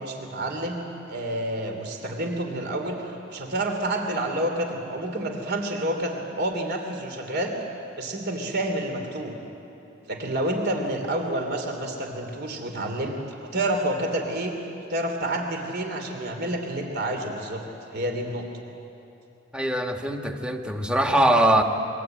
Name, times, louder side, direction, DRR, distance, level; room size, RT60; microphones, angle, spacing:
voice 1, 0.0-7.5 8.0-9.3 10.1-14.5 14.9-17.6 17.9-18.5, right 1 dB, 55° right, 4 dB, 3.3 m, -29 dB
voice 2, 19.5-21.6, right 1 dB, 5° right, 4 dB, 1.6 m, -22 dB
28.0 x 23.0 x 9.1 m, 2.9 s
head